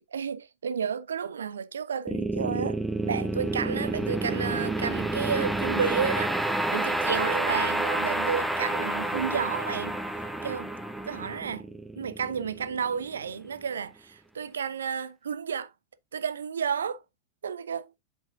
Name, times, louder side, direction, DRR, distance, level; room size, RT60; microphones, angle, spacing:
voice 1, 0.1-10.0 10.4-10.7 11.1-11.7 12.0-15.7 16.1-17.0 17.4-17.9, right 7 dB, 70° right, 0.6 m, -31 dB
sound 1, 2.1-13.3, right 1 dB, 5° right, 1.0 m, -29 dB
7.9 x 6.9 x 2.4 m
figure-of-eight pair, 90°, 0 cm